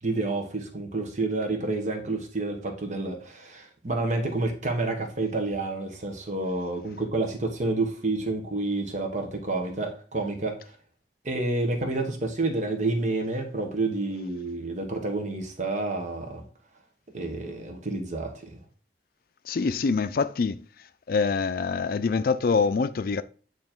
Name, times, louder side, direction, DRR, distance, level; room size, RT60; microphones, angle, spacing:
voice 1, 0.0-10.8 11.2-16.4 17.1-18.6, right 2 dB, 45° right, 1.2 m, -29 dB
voice 2, 19.5-20.6 21.1-23.2, left 4 dB, 55° left, 0.4 m, -25 dB
9.0 x 3.2 x 4.4 m
head